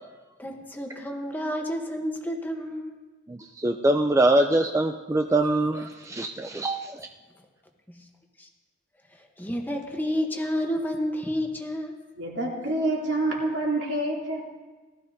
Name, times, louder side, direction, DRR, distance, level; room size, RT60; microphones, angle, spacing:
voice 1, 0.4-3.0 5.2-5.3 7.9-8.1 8.4-8.5 9.1-12.0, equal, 10° left, 2 dB, 0.9 m, -30 dB
voice 2, 3.3-7.1, right 1 dB, 15° right, 4 dB, 0.3 m, -24 dB
voice 3, 12.2-14.4, right 1 dB, 70° right, -3 dB, 2.8 m, -27 dB
18.5 x 13.0 x 2.7 m, 1.2 s
head